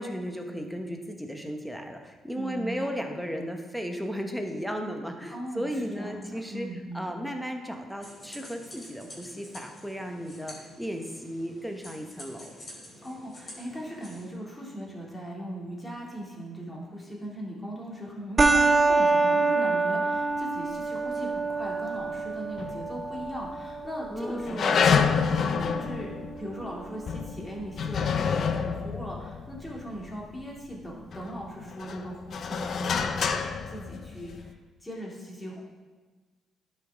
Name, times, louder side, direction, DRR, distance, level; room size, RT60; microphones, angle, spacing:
voice 1, 0.0-6.7 6.9-12.5 19.6-19.8 24.1-25.8, equal, ahead, 3 dB, 1.1 m, -35 dB
voice 2, 2.3-2.9 5.3-7.1 13.0-25.1 25.8-34.5 34.8-35.7, equal, 15° left, -3 dB, 2.3 m, -39 dB
sound 1, 8.0-14.3, left 1 dB, 35° left, 2.9 m, -48 dB
sound 2, 18.4-27.4, right 3 dB, 30° right, 0.6 m, -27 dB
sound 3, 22.6-23.4 23.7-23.8 24.5-30.6 31.1-34.5, left 6 dB, 55° left, 0.5 m, -28 dB
11.5 x 5.3 x 3.6 m, 1.3 s
cardioid pair, 90°, 0 cm